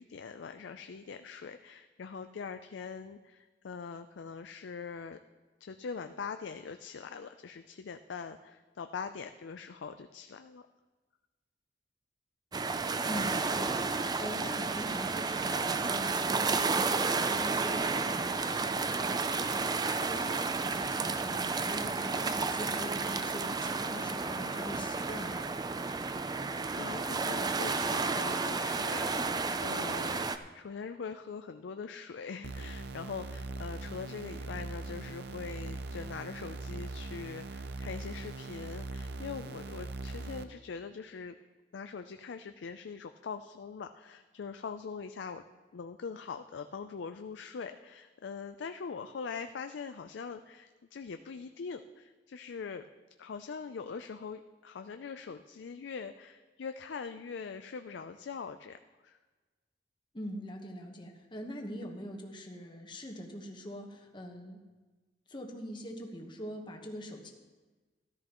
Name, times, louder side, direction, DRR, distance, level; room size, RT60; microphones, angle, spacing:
voice 1, 0.0-5.2 5.6-10.6 26.3-41.4 41.7-45.4 45.7-52.9 53.2-59.2, left 5 dB, 80° left, 8 dB, 0.4 m, -42 dB
sound 1, 12.5-30.4, right 4 dB, 20° right, 0.4 m, -32 dB
voice 2, 13.1-25.4 60.1-64.6 65.3-67.3, equal, 25° left, 2 dB, 1.2 m, -43 dB
sound 2, 32.4-40.4, right 3 dB, 65° right, 0.6 m, -41 dB
13.5 x 12.5 x 3.0 m, 1.3 s
head